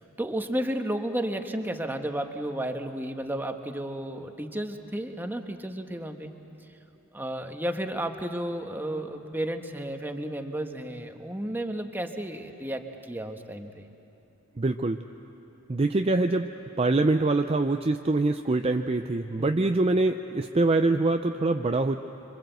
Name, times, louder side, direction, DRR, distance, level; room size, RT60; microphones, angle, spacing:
voice 1, 0.0-6.3 7.1-13.9 19.4-19.7, right 1 dB, 10° right, 5 dB, 1.2 m, -33 dB
voice 2, 14.6-15.0 15.7-16.5 16.8-22.0, right 2 dB, 30° right, 6 dB, 0.5 m, -24 dB
26.0 x 25.0 x 8.0 m, 2.9 s
head